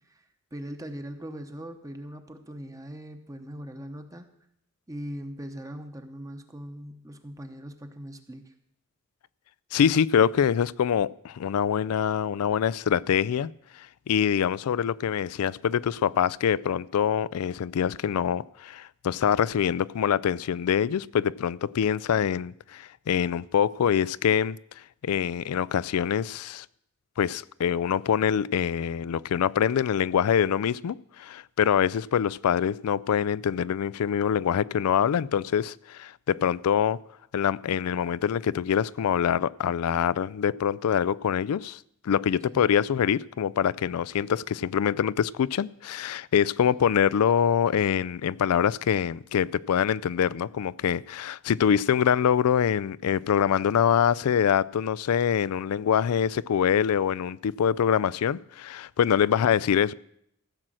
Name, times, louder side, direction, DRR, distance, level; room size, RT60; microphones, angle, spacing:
voice 1, 0.5-4.3 4.9-8.5 42.5-42.7, equal, 15° right, 0.8 m, -40 dB
voice 2, 9.7-13.5 13.8-24.6 25.0-26.7 27.2-37.0 37.3-59.9, left 8 dB, 90° left, 0.4 m, -25 dB
15.0 x 6.2 x 7.6 m
head